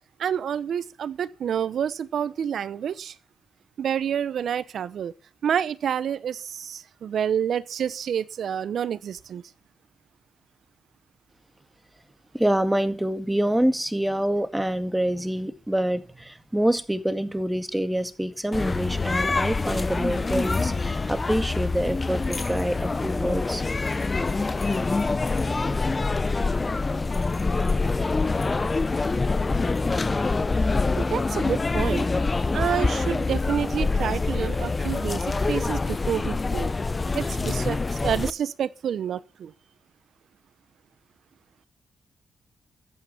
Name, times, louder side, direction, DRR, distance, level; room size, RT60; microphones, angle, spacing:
voice 1, 0.2-3.1 3.8-5.1 5.4-9.4 31.0-32.1 32.5-36.7 37.1-39.5, right 8 dB, 75° right, 0.9 m, -28 dB
voice 2, 12.3-23.6, right 1 dB, 10° right, 2.1 m, -26 dB
sound 1, 18.5-38.3, left 3 dB, 30° left, 0.8 m, -25 dB
14.0 x 8.7 x 8.5 m
cardioid pair, 65°, 0 cm